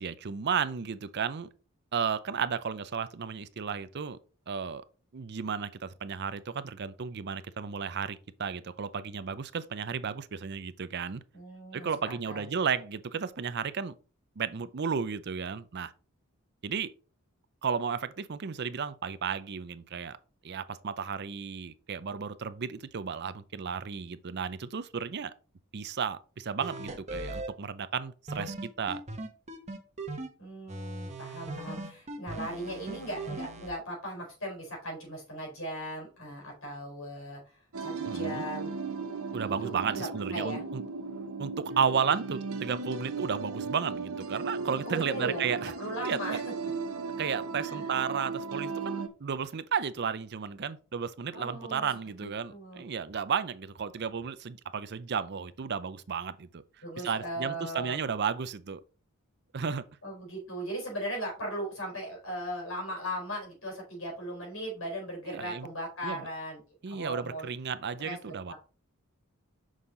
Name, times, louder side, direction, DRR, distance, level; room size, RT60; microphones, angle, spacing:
voice 1, 0.0-1.5 1.9-4.2 4.5-4.8 5.1-11.2 11.7-13.9 14.4-15.9 16.6-16.9 17.6-20.2 20.4-25.3 25.7-29.0 38.1-38.4 39.3-40.8 41.4-45.7 46.0-46.4 47.2-56.6 57.0-58.8 59.5-59.8 65.3-65.7 66.0-66.3 66.8-68.5, right 6 dB, 50° right, 0.5 m, -33 dB
voice 2, 11.3-12.5 30.4-37.4 37.8-38.7 39.6-40.6 44.9-45.5 45.8-46.5 47.6-47.9 51.3-51.9 52.2-52.8 56.8-58.0 60.0-67.5 68.0-68.5, right 1 dB, 65° left, 4.3 m, -38 dB
sound 1, 26.6-27.5 28.3-30.3 30.7-33.7, right 2 dB, 30° right, 1.1 m, -38 dB
sound 2, 37.7-49.1, right 4 dB, 80° right, 0.9 m, -36 dB
6.4 x 5.5 x 3.8 m
head